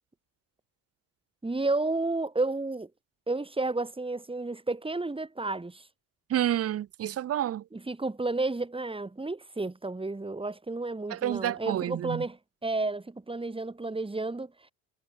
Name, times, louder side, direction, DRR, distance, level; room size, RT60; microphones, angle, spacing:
voice 1, 1.4-2.9 3.3-5.9 7.7-14.7, right 2 dB, 10° right, 2.1 m, -32 dB
voice 2, 6.3-7.6 11.1-12.2, right 11 dB, 35° right, 0.5 m, -29 dB
supercardioid pair, 70°, 43 cm